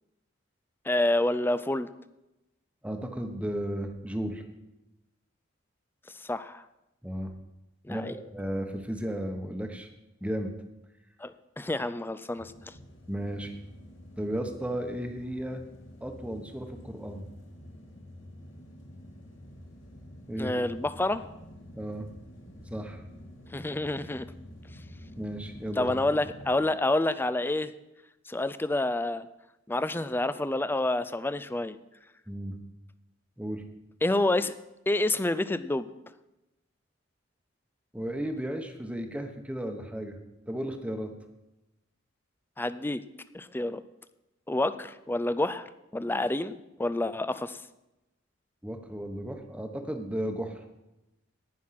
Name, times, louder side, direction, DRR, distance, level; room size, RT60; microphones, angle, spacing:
voice 1, 0.8-1.9 6.1-6.6 7.8-8.2 11.2-12.8 20.4-21.3 23.5-24.3 25.8-27.7 28.3-29.3 29.7-31.8 34.0-34.5 34.9-35.9 42.6-43.0 43.3-43.8 44.5-47.6, left 2 dB, 10° left, 13 dB, 0.4 m, -28 dB
voice 2, 2.8-4.4 7.0-7.3 7.9-9.9 10.2-10.5 13.1-13.5 14.2-15.6 16.0-17.2 20.3-20.6 21.8-22.1 22.7-23.0 25.2-25.9 32.3-32.6 33.4-33.6 37.9-40.2 40.5-41.1 48.6-50.6, right 1 dB, 5° right, 5 dB, 1.1 m, -34 dB
sound 1, 12.4-26.5, equal, 65° left, 2.5 m, -48 dB
18.0 x 6.3 x 5.8 m, 0.95 s
head